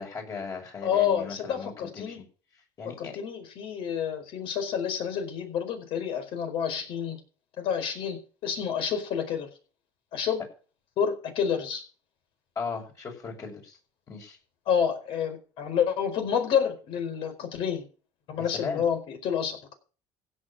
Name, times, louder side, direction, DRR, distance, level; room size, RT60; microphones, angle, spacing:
voice 1, 0.0-2.2 2.8-3.2 12.5-13.8 14.1-14.4 18.4-18.8, left 5 dB, 35° left, 2 dB, 6.5 m, -37 dB
voice 2, 0.8-2.2 2.8-7.2 7.6-9.5 10.1-10.4 11.0-11.8 14.7-17.8 18.3-19.7, left 8 dB, 60° left, 6 dB, 4.7 m, -29 dB
16.0 x 6.7 x 7.1 m, 0.38 s
cardioid pair, 120°, 10 cm